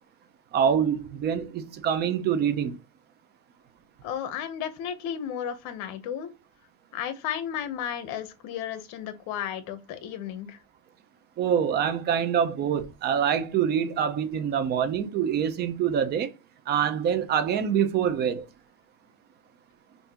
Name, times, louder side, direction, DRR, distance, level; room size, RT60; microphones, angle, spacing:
voice 1, 0.5-2.7 11.4-16.3 16.7-18.4, right 8 dB, 30° right, 0.6 m, -25 dB
voice 2, 4.0-6.3 6.9-10.6, left 9 dB, 55° left, 0.9 m, -33 dB
5.6 x 2.7 x 2.9 m
cardioid pair, 160°, 35 cm